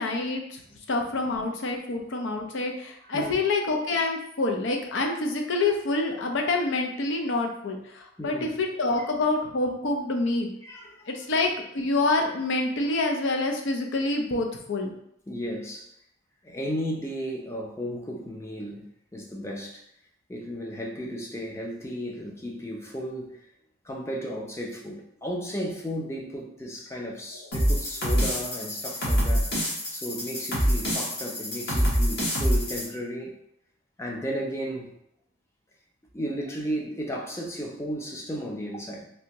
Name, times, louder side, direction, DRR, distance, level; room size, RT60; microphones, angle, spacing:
voice 1, 0.0-0.6 0.9-10.5 11.1-14.9, left 2 dB, 75° left, 2 dB, 0.6 m, -27 dB
voice 2, 8.2-8.5 9.0-9.1 10.6-11.1 15.3-15.9 16.4-19.8 20.3-23.4 23.8-33.3 34.0-34.9 36.1-39.1, equal, 15° left, 0 dB, 0.5 m, -34 dB
sound 1, 27.5-32.8, equal, 60° left, 1.2 m, -26 dB
3.3 x 2.6 x 2.9 m, 0.75 s
head